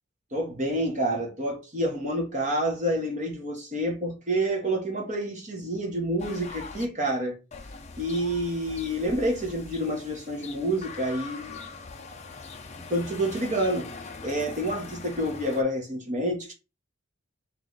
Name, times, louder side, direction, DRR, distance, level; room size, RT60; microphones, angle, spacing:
voice 1, 0.3-7.4 8.0-11.7 12.9-16.5, right 1 dB, 35° right, 1.0 m, -28 dB
sound 1, 6.2-6.9 7.5-15.6, left 4 dB, 30° left, 0.5 m, -42 dB
3.1 x 3.1 x 3.9 m
head